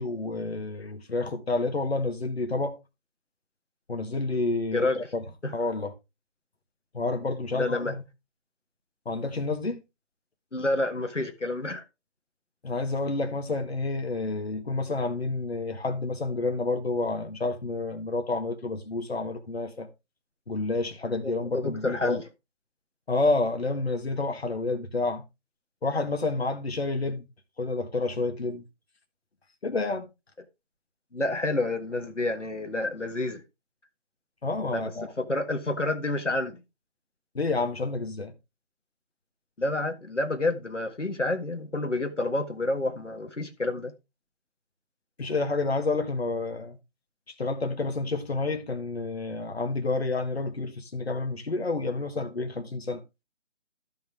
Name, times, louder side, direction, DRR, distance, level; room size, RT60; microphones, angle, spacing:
voice 1, 0.0-2.8 3.9-5.2 5.5-5.9 6.9-8.0 9.0-9.8 12.6-19.9 20.5-22.2 23.1-25.2 25.8-27.2 27.6-28.6 29.6-30.1 34.4-35.1 37.3-38.3 45.2-46.8 47.4-53.0, left 3 dB, 60° left, 1.6 m, -29 dB
voice 2, 4.7-5.1 5.4-5.5 7.5-7.9 10.5-11.8 21.2-22.2 31.1-33.4 34.7-34.9 35.2-36.6 39.6-43.9, left 2 dB, 90° left, 1.7 m, -29 dB
13.5 x 5.7 x 3.5 m
figure-of-eight pair, 155°, 35 cm